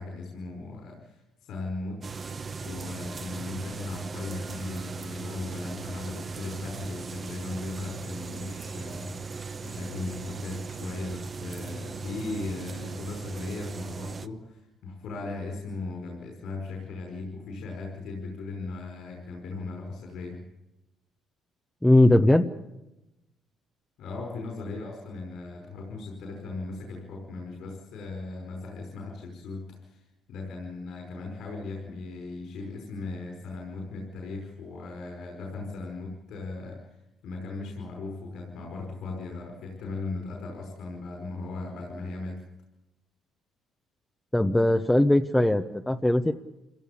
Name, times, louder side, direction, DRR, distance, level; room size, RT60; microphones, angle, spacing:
voice 1, 0.0-2.0 2.6-20.4 24.0-42.4, left 3 dB, 70° left, 1 dB, 5.2 m, -38 dB
sound 1, 2.0-14.3, right 5 dB, 30° right, 1.0 m, -38 dB
voice 2, 21.8-22.5 44.3-46.3, left 1 dB, 5° left, 5 dB, 0.9 m, -20 dB
26.5 x 16.5 x 8.6 m, 0.96 s
cardioid pair, 110°, 0 cm